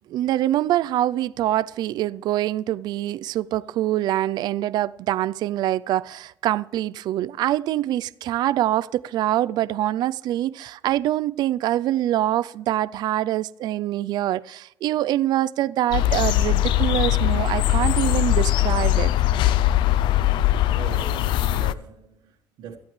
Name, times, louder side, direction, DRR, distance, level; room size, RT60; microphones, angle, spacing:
voice 1, 0.1-19.1, right 13 dB, 60° right, 0.4 m, -24 dB
sound 1, 15.9-21.7, left 13 dB, 90° left, 0.5 m, -21 dB
voice 2, 20.7-22.8, right 7 dB, 85° right, 1.7 m, -40 dB
17.5 x 14.0 x 3.2 m
cardioid pair, 180°, 8 cm